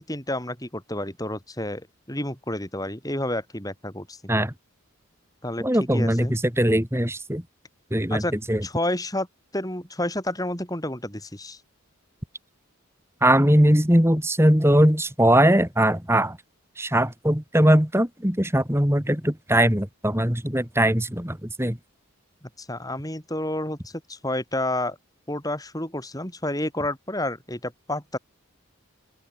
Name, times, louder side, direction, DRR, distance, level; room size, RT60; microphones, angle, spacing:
voice 1, 0.0-1.8 2.1-4.2 5.4-5.6 5.9-6.4 8.1-8.3 8.6-9.3 9.5-11.6 22.6-23.8 24.1-25.0 25.3-28.2, left 1 dB, 15° left, 6.8 m, -29 dB
voice 2, 5.6-7.4 7.9-8.2 8.5-8.6 13.2-16.4 16.8-21.8, right 1 dB, 10° right, 3.0 m, -20 dB
open air
head